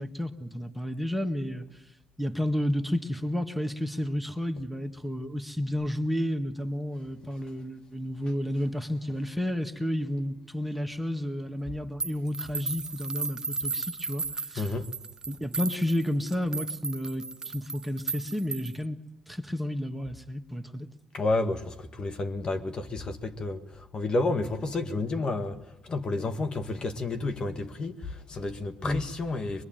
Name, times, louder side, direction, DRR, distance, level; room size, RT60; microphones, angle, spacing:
voice 1, 0.0-1.6 2.2-14.7 15.3-19.0 19.3-20.9 28.8-29.0, left 1 dB, 5° right, 1.8 m, -31 dB
sound 1, 12.0-18.8, right 4 dB, 30° right, 1.1 m, -35 dB
voice 2, 14.6-14.9 21.1-29.6, left 2 dB, 45° left, 2.0 m, -31 dB
23.5 x 22.5 x 9.2 m
hypercardioid pair, 55°, 2 cm